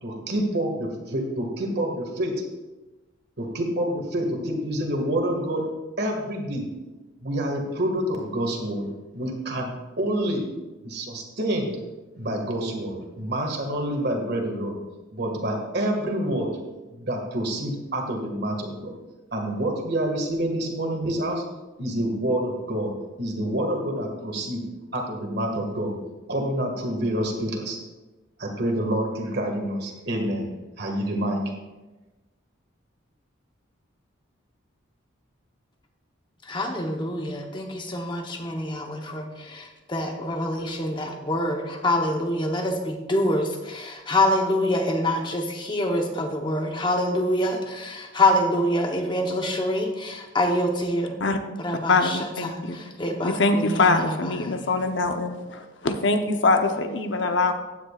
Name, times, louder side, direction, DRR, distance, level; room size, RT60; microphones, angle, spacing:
voice 1, 0.0-2.3 3.4-5.7 6.0-6.7 7.2-8.9 9.1-10.4 10.8-11.8 12.2-14.8 15.1-16.5 16.9-18.9 19.3-21.4 21.8-24.6 24.9-26.0 26.3-27.8 28.4-30.5 30.8-31.4, right 1 dB, 50° right, 2 dB, 1.9 m, -27 dB
voice 2, 36.5-51.2 51.6-54.7, left 1 dB, 20° left, 3 dB, 0.9 m, -26 dB
voice 3, 51.9-52.8 53.2-57.5, left 3 dB, 60° left, 6 dB, 0.9 m, -23 dB
15.0 x 9.7 x 2.4 m, 1.1 s
head